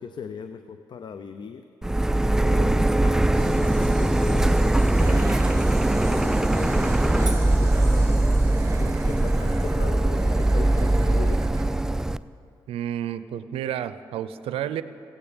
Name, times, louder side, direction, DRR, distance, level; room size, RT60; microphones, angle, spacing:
voice 1, 0.0-1.6 2.4-5.6 6.1-8.4 8.8-11.5, left 6 dB, 50° left, 9 dB, 0.5 m, -39 dB
Printer, 1.8-12.2, right 1 dB, 5° right, 0.3 m, -21 dB
sound 1, 3.3-9.7, equal, 20° left, 3.6 m, -47 dB
sound 2, 4.9-12.1, right 4 dB, 30° right, 0.8 m, -41 dB
voice 2, 12.7-14.8, right 10 dB, 75° right, 13 dB, 0.5 m, -30 dB
15.5 x 8.9 x 5.2 m, 2.6 s
supercardioid pair, 65°, 10 cm